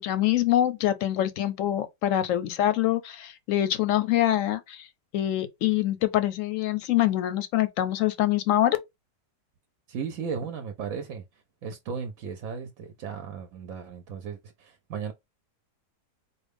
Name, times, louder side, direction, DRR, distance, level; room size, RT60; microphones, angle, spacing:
voice 1, 0.0-4.9 5.1-8.8, left 13 dB, 65° left, 0.8 m, -25 dB
voice 2, 9.9-15.1, right 6 dB, 65° right, 0.9 m, -36 dB
4.4 x 2.2 x 3.4 m
omnidirectional pair, 1.8 m